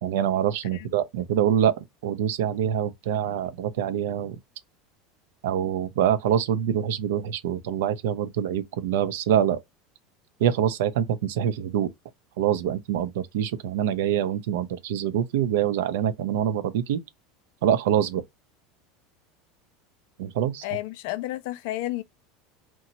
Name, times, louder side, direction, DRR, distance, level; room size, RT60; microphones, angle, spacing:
voice 1, 0.0-1.8 2.0-4.4 5.4-9.6 10.4-11.9 12.4-17.0 17.6-18.2 20.2-20.6, right 9 dB, 75° right, 0.5 m, -25 dB
voice 2, 20.6-22.0, left 16 dB, 70° left, 0.4 m, -31 dB
2.8 x 2.2 x 2.7 m
hypercardioid pair, 90°, 0 cm